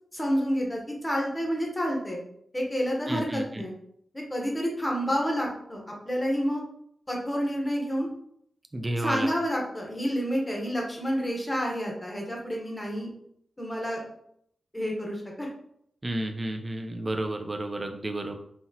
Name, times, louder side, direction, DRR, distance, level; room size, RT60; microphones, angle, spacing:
voice 1, 0.1-2.2 2.5-3.7 4.1-6.6 7.1-8.1 9.0-13.1 13.6-14.0 14.7-15.5, equal, 10° left, -1 dB, 1.0 m, -29 dB
voice 2, 3.1-3.6 8.7-9.3 16.0-18.3, right 1 dB, 20° right, 5 dB, 0.5 m, -31 dB
5.7 x 2.8 x 2.8 m, 0.71 s
wide cardioid pair, 175°, 0 cm